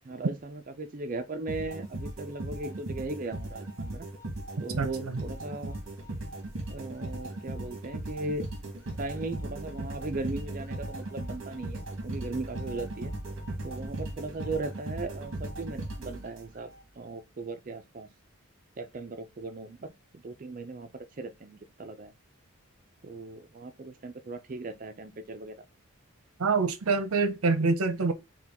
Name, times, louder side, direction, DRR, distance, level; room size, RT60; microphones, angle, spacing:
voice 1, 0.0-4.1 4.6-5.8 6.7-8.5 9.0-13.1 13.6-18.1 18.8-20.9 21.2-22.1 23.0-25.6, right 2 dB, 40° right, 0.5 m, -38 dB
sound 1, 1.5-16.7, right 1 dB, 60° right, 1.1 m, -37 dB
voice 2, 4.8-5.2 26.4-28.1, right 4 dB, 80° right, 0.6 m, -26 dB
4.3 x 2.3 x 3.5 m
head